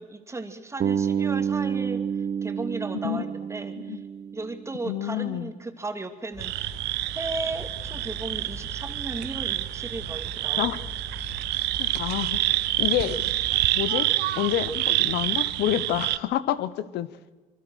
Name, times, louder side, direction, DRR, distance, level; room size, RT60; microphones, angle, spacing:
voice 1, 0.0-4.0 4.3-6.7 7.2-10.7, right 2 dB, 15° right, 7 dB, 2.6 m, -36 dB
Bass guitar, 0.8-4.9, right 7 dB, 50° right, 1.3 m, -29 dB
voice 2, 4.8-5.5 10.6-10.8 11.8-12.4 12.8-13.2 13.7-14.1 14.3-17.1, left 12 dB, 80° left, 15 dB, 1.1 m, -28 dB
sound 1, 6.3-13.8, left 2 dB, 30° left, 7.6 m, -42 dB
sound 2, 6.4-16.2, right 16 dB, 85° right, 1.0 m, -27 dB
27.0 x 24.0 x 6.5 m, 1.3 s
cardioid pair, 110°, 17 cm